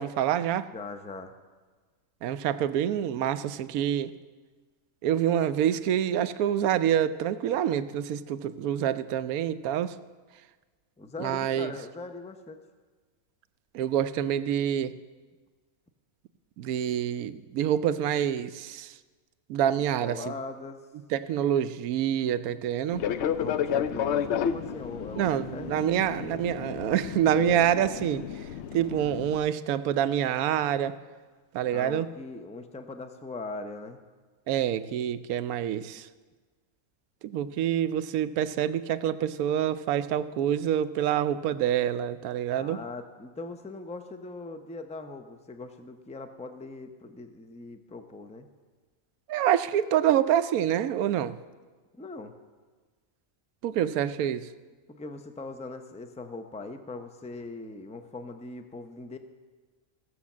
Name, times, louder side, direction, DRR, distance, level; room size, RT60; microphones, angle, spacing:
voice 1, 0.0-0.7 2.2-4.1 5.0-9.9 11.2-11.7 13.7-14.9 16.6-18.9 19.5-20.2 21.1-23.1 25.2-28.2 28.7-31.0 31.5-32.1 34.5-36.1 37.2-42.8 49.3-51.4 53.6-54.5, right 10 dB, 90° right, 14 dB, 1.1 m, -26 dB
voice 2, 0.7-1.3 11.0-12.6 20.0-20.8 23.4-25.8 31.7-34.0 42.6-48.5 51.9-52.3 54.9-59.2, left 3 dB, 10° left, 7 dB, 0.4 m, -40 dB
Fixed-wing aircraft airplane, 22.9-29.4, left 8 dB, 65° left, 0.8 m, -31 dB
16.0 x 7.0 x 7.2 m, 1.4 s
omnidirectional pair, 1.5 m